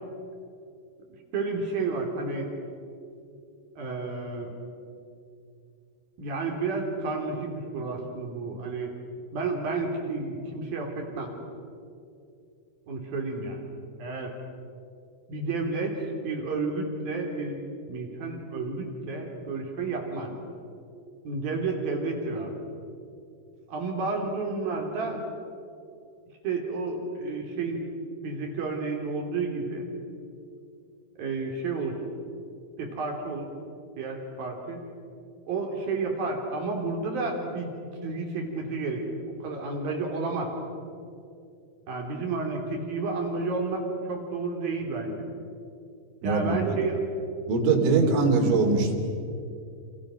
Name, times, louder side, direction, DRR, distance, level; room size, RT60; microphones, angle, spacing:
voice 1, 1.3-2.5 3.8-4.5 6.2-8.9 9.3-11.3 12.9-13.6 14.0-14.3 15.3-17.6 17.9-20.3 21.2-22.6 23.7-25.2 26.4-27.8 28.2-29.9 31.2-32.0 32.8-33.5 34.0-34.8 35.5-37.7 38.0-39.1 39.4-40.5 41.9-45.2 46.2-47.0 48.0-48.1, right 3 dB, 50° right, 1 dB, 4.8 m, -31 dB
voice 2, 46.2-46.8 47.5-48.9, right 4 dB, 75° right, 3 dB, 5.6 m, -22 dB
28.5 x 28.5 x 6.4 m, 2.5 s
omnidirectional pair, 5.6 m